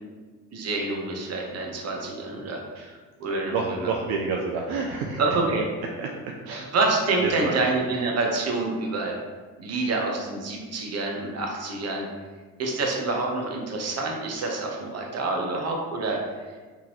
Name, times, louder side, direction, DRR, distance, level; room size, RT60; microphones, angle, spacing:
voice 1, 0.5-3.9 5.2-5.7 6.7-9.1 9.6-12.1 12.6-16.2, right 3 dB, 40° right, 0 dB, 0.9 m, -27 dB
voice 2, 3.5-5.2 6.0-6.1 6.5-6.7 7.2-7.5, right 4 dB, 70° right, 0 dB, 0.5 m, -28 dB
3.6 x 3.0 x 3.0 m, 1.4 s
supercardioid pair, 75°, 37 cm